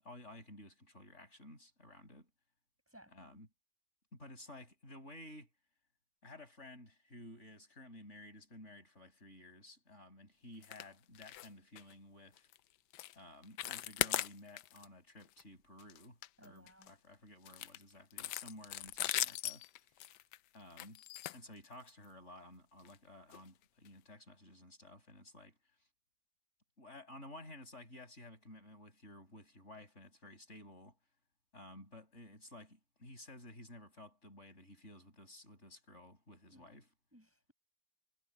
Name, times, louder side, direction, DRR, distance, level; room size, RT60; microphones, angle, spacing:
voice 1, 0.0-2.3 3.1-3.5 4.1-5.5 6.2-12.5 13.1-19.6 20.5-21.0 21.3-25.6 26.8-31.0 31.5-36.9, left 1 dB, 40° left, 7.6 m, -54 dB
voice 2, 2.9-3.4 16.4-16.9 36.5-36.8 37.1-37.5, equal, 5° right, 7.8 m, -61 dB
sound 1, 10.6-10.9 11.2-11.5 11.8-11.9 12.4-12.6 12.9-13.2 13.4-14.9 15.2-15.4 15.8-16.9 17.5-22.1 22.8-23.0 23.3-23.4 23.9-24.0, left 13 dB, 75° left, 1.2 m, -39 dB
omnidirectional pair, 1.9 m